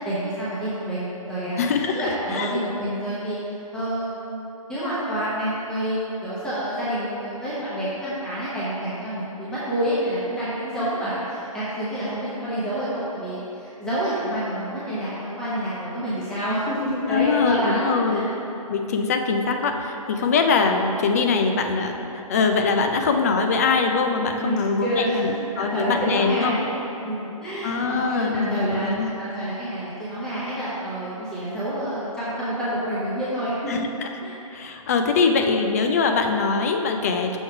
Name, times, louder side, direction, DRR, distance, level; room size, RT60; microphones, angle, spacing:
voice 1, 0.0-3.4 3.7-18.3 24.4-26.7 27.0-33.9 34.2-34.3, right 1 dB, 5° left, -11 dB, 0.8 m, -28 dB
voice 2, 1.6-2.5 17.1-18.3 18.7-25.3 25.6-26.6 27.6-29.1 33.7-34.1 34.5-37.4, left 4 dB, 25° left, 5 dB, 0.3 m, -22 dB
6.2 x 4.7 x 4.7 m, 3.0 s
hypercardioid pair, 155°, 19 cm